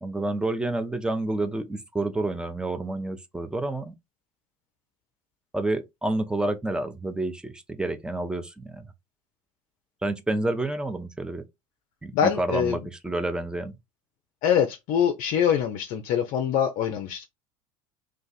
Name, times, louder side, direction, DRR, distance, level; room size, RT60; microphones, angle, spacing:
voice 1, 0.0-3.9 5.5-8.9 10.0-11.4 12.0-13.7, right 2 dB, 5° right, 0.6 m, -29 dB
voice 2, 12.1-12.8 14.4-17.3, left 8 dB, 50° left, 0.5 m, -24 dB
2.5 x 2.4 x 3.9 m
hypercardioid pair, 75°, 17 cm